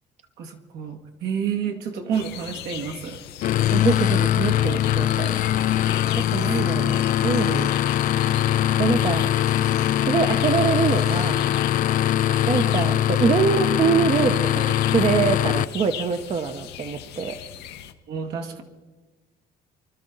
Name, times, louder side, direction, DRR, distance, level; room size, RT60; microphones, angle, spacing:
voice 1, 0.4-3.2 6.5-6.6 12.3-12.4 18.1-18.6, right 7 dB, 75° right, 4 dB, 1.9 m, -30 dB
sound 1, 2.1-17.9, left 10 dB, 85° left, 1.0 m, -39 dB
sound 2, 3.4-15.7, left 12 dB, 55° left, 0.4 m, -22 dB
voice 2, 3.7-5.3 6.3-7.7 8.8-9.3 10.0-11.6 12.4-17.4, right 5 dB, 40° right, 7 dB, 0.9 m, -24 dB
25.0 x 12.5 x 3.9 m, 1.3 s
cardioid pair, 110°, 17 cm